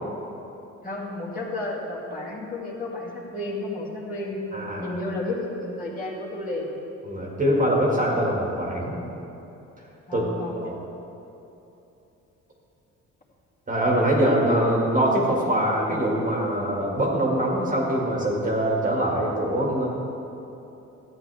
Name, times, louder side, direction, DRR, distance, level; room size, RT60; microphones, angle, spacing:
voice 1, 0.8-4.4 4.8-6.7 10.1-10.6, left 2 dB, 30° left, -6 dB, 2.4 m, -32 dB
voice 2, 4.5-4.9 7.0-9.0 10.1-10.7 13.7-19.9, right 1 dB, 25° right, -4 dB, 2.0 m, -23 dB
13.0 x 8.8 x 3.4 m, 2.9 s
cardioid pair, 90°, 30 cm